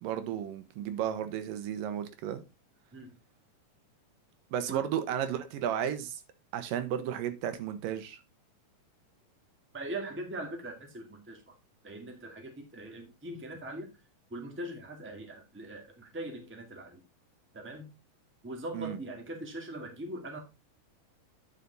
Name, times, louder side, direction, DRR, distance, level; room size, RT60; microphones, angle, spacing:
voice 1, 0.0-2.4 4.5-6.2 6.5-8.2 18.7-19.0, right 10 dB, 90° right, 10 dB, 2.7 m, -33 dB
voice 2, 9.7-11.5 11.8-13.9 14.3-17.0 17.5-17.9 18.4-20.4, right 1 dB, 5° right, 3 dB, 1.2 m, -41 dB
10.0 x 5.7 x 4.0 m, 0.26 s
omnidirectional pair, 3.8 m